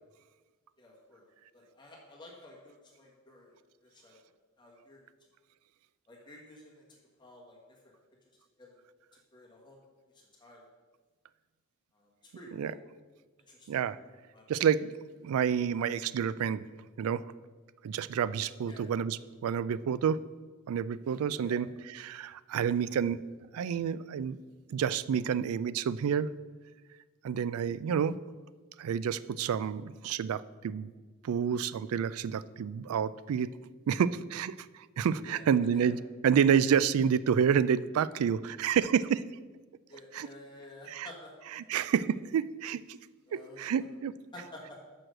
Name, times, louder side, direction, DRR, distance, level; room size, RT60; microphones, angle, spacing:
voice 1, 0.8-1.2 1.5-3.5 3.8-4.2 4.6-5.0 6.1-6.8 7.2-7.6 7.8-7.9 8.6-8.8 9.3-9.8 10.1-10.6 11.9-12.8 13.5-13.7 14.3-14.4 18.7-18.9 21.4-21.6 35.2-35.9 39.9-41.7 43.3-43.6 44.3-44.6, left 2 dB, 20° left, -2 dB, 1.4 m, -51 dB
voice 2, 13.7-14.0 14.5-15.0 15.2-16.7 17.0-17.3 17.8-20.3 20.7-23.3 23.5-24.4 24.7-26.3 27.2-28.2 28.8-30.9 31.2-33.5 33.9-39.2 40.1-40.3 40.9-41.1 41.6-43.0 43.3-44.1, right 7 dB, 85° right, 17 dB, 0.3 m, -29 dB
6.4 x 6.1 x 6.5 m, 1.3 s
head